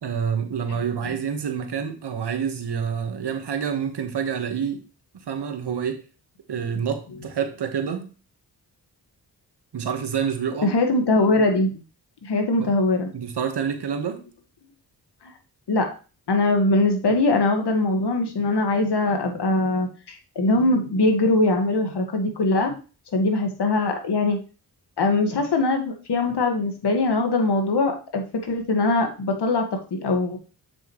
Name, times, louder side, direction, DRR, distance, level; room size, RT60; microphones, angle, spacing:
voice 1, 0.0-4.8 5.1-6.0 6.5-8.1 9.7-10.7 12.6-12.7 13.1-14.2, right 7 dB, 70° right, 7 dB, 1.5 m, -27 dB
voice 2, 10.6-11.8 12.2-13.1 15.2-15.3 15.7-15.9 16.3-22.8 23.1-24.4 25.0-30.4, left 2 dB, 70° left, 4 dB, 1.9 m, -22 dB
7.5 x 6.3 x 3.2 m, 0.34 s
cardioid pair, 60°, 42 cm